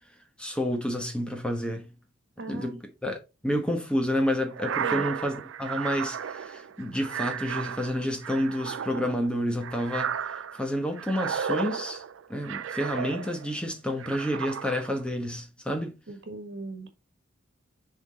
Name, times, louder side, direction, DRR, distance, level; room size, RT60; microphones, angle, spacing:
voice 1, 0.4-1.9 2.5-3.2 3.4-12.0 12.3-16.0, equal, 5° left, 1.1 m, -29 dB
voice 2, 2.4-2.8 4.8-5.0 16.1-16.9, right 3 dB, 65° right, 1.5 m, -37 dB
sound 1, 4.5-13.6 14.0-15.0, right 8 dB, 85° right, 0.4 m, -34 dB
6.9 x 3.9 x 4.1 m
head